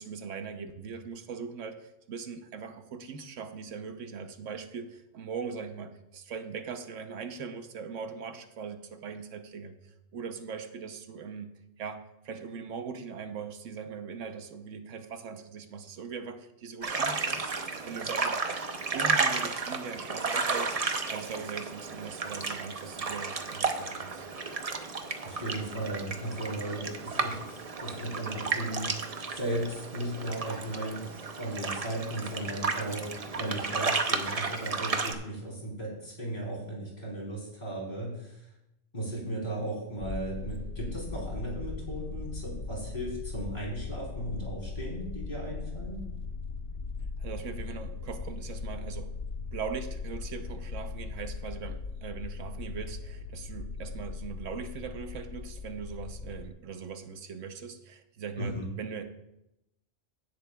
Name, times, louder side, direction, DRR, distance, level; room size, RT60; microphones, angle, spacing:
voice 1, 0.0-11.5 11.8-18.4 18.9-24.3 47.2-49.1 49.5-59.0, right 6 dB, 85° right, 7 dB, 1.2 m, -40 dB
sound 1, 16.8-35.1, right 4 dB, 35° right, 0.7 m, -33 dB
voice 2, 25.2-38.4 38.9-46.1 58.4-58.7, right 1 dB, 35° left, -4 dB, 3.6 m, -36 dB
sound 2, 40.0-56.5, left 4 dB, 65° left, 1.0 m, -39 dB
17.0 x 8.2 x 2.3 m, 0.86 s
omnidirectional pair, 1.3 m